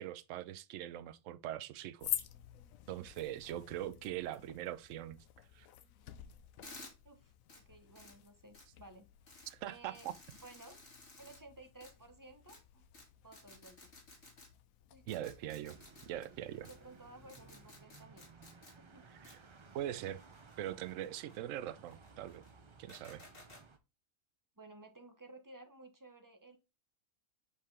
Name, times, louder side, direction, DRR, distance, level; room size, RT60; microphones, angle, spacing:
voice 1, 0.0-2.1 2.9-5.2 5.5-5.7 9.5-9.9 15.1-15.8 16.0-16.7 19.2-19.4 19.7-20.2 20.6-22.5 22.8-23.2, right 12 dB, 70° right, 0.9 m, -42 dB
sound 1, 2.0-17.8, left 11 dB, 80° left, 1.0 m, -49 dB
voice 2, 4.0-4.5 7.0-9.1 9.7-10.1 10.4-10.8 11.2-12.9 13.2-13.9 14.9-15.3 16.7-18.3 18.8-19.1 24.6-26.6, right 2 dB, 20° right, 0.7 m, -56 dB
sound 2, 6.6-6.9 7.5-7.6 8.0-8.1 8.5-8.7 9.3-9.5 9.9-11.4 11.8-11.9 12.5-12.6 12.9-13.1 13.3-14.5 15.1-16.1 16.6-16.8 17.3-18.7 19.2-19.4 20.0-21.4 21.9-22.5 22.9-23.6, left 2 dB, 50° left, 2.3 m, -55 dB
sound 3, 15.6-23.8, right 4 dB, 45° right, 0.3 m, -59 dB
5.7 x 4.9 x 3.5 m
omnidirectional pair, 1.4 m